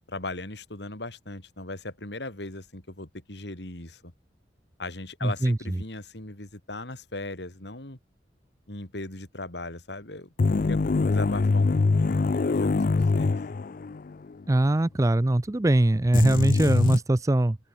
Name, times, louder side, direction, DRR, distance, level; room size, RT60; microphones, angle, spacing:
voice 1, 0.1-4.1 4.8-8.0 8.7-10.3 10.6-10.8 11.1-13.4, left 2 dB, 70° left, 3.3 m, -38 dB
voice 2, 5.2-5.6 14.5-17.6, right 1 dB, 20° right, 0.5 m, -22 dB
sound 1, 10.4-14.1 14.4-14.5 16.1-17.0, left 3 dB, 50° left, 0.4 m, -23 dB
open air
head